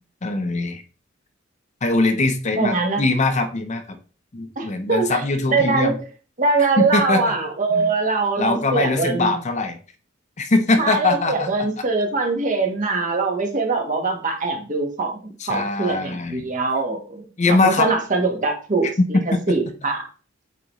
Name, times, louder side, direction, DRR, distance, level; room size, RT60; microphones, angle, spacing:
voice 1, 0.2-0.8 1.8-4.0 4.3-5.9 6.8-7.3 7.7-7.9 8.4-9.8 10.4-11.5 15.4-16.5 17.4-17.9 19.3-19.4, left 3 dB, 35° left, 7 dB, 0.7 m, -22 dB
voice 2, 2.5-3.0 4.6-5.9 6.4-9.4 10.8-20.0, right 3 dB, 40° right, 3 dB, 1.3 m, -23 dB
8.3 x 3.9 x 3.1 m, 0.37 s
head